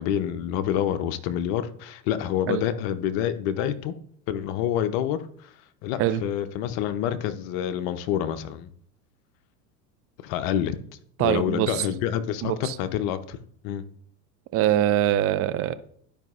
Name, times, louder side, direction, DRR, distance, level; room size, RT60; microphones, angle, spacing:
voice 1, 0.0-4.0 4.3-5.5 5.8-8.7 10.2-10.8 11.2-13.4 13.6-13.8, left 10 dB, 55° left, 0.8 m, -27 dB
voice 2, 11.2-11.9 12.4-12.8 14.5-15.7, right 12 dB, 30° right, 0.4 m, -23 dB
12.0 x 5.0 x 2.5 m
hypercardioid pair, 95°, 49 cm